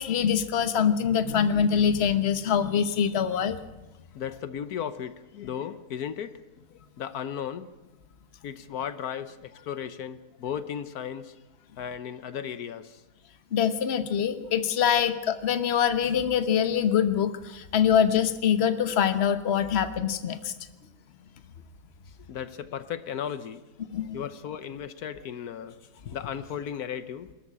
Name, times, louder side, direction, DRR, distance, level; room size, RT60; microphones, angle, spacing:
voice 1, 0.0-3.6 13.5-20.5 23.9-24.2, left 8 dB, 45° left, 11 dB, 1.2 m, -24 dB
voice 2, 4.1-6.4 6.7-7.7 8.4-11.4 11.8-13.0 15.0-15.1 22.3-23.6 24.1-27.3, left 8 dB, 75° left, 13 dB, 1.4 m, -35 dB
23.0 x 13.0 x 8.7 m, 1.1 s
omnidirectional pair, 1.6 m